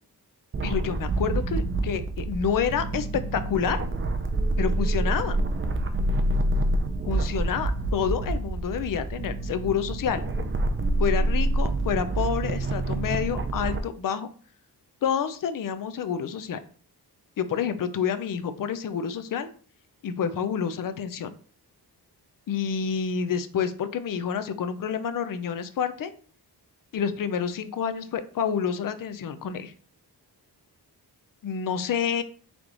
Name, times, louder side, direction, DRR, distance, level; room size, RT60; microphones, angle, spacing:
sound 1, 0.5-13.8, right 2 dB, 30° right, 0.4 m, -27 dB
voice 1, 0.6-3.8 4.6-5.4 7.0-10.2 11.0-14.3 15.0-16.6 17.4-19.5 20.0-21.3 22.5-26.1 26.9-29.7 31.4-32.2, left 7 dB, 55° left, 11 dB, 0.4 m, -28 dB
3.4 x 3.0 x 3.8 m, 0.42 s
wide cardioid pair, 115°, 41 cm